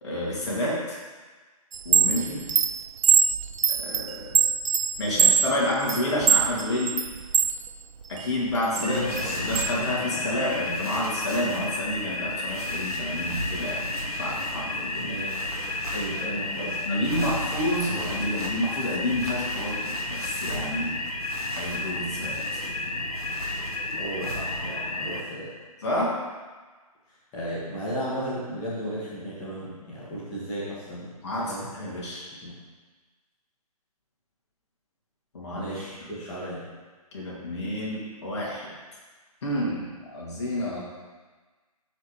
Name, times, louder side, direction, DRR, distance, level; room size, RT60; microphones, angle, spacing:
voice 1, 0.0-1.0 1.8-2.4 3.7-4.4 5.0-7.0 8.1-13.9 14.2-15.1 16.8-21.0 21.6-22.4 25.8-26.1 31.2-32.3 35.3-35.7 37.1-38.7 39.4-40.8, left 1 dB, 45° left, -5 dB, 2.7 m, -29 dB
Chime, 1.7-7.6 8.0-9.7, right 7 dB, 55° right, 0.6 m, -22 dB
voice 2, 2.0-2.4 8.8-9.4 14.9-15.5 15.9-16.8 24.0-25.5 27.3-31.1 31.5-31.7 32.4-32.5 35.6-36.6, equal, 20° left, -10 dB, 2.0 m, -34 dB
sound 1, 8.8-25.2, left 2 dB, 70° left, 1.2 m, -32 dB
sound 2, 8.9-24.8, right 1 dB, 75° right, 1.9 m, -39 dB
13.5 x 5.1 x 3.4 m, 1.4 s
figure-of-eight pair, 140°, 19 cm